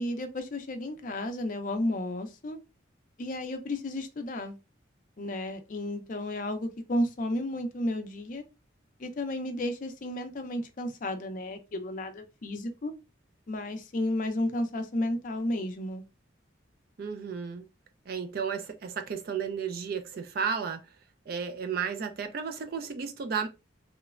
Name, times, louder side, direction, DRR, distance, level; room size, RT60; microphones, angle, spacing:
voice 1, 0.0-2.6 3.2-4.6 5.2-8.4 9.0-12.9 13.5-16.0, left 1 dB, 45° left, 0.4 m, -32 dB
voice 2, 17.0-17.7 18.1-20.8 21.3-23.5, right 6 dB, 50° right, 0.3 m, -33 dB
3.0 x 2.1 x 2.3 m
head